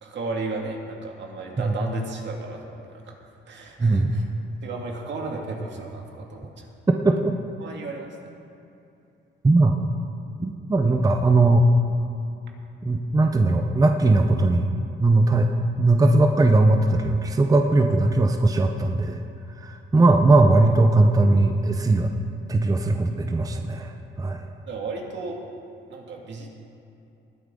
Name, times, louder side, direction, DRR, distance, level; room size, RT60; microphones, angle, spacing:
voice 1, 0.0-3.1 3.5-4.3 4.6-6.7 7.6-8.1 24.7-25.4 25.9-26.5, right 3 dB, 65° right, 1 dB, 2.1 m, -34 dB
voice 2, 3.8-4.3 7.0-7.3 9.4-9.7 10.4-11.7 12.8-14.7 15.0-15.5 15.8-19.2 19.6-22.1 22.5-24.4, right 2 dB, 20° right, 4 dB, 0.7 m, -19 dB
19.5 x 10.0 x 3.8 m, 2.7 s
cardioid pair, 90°, 20 cm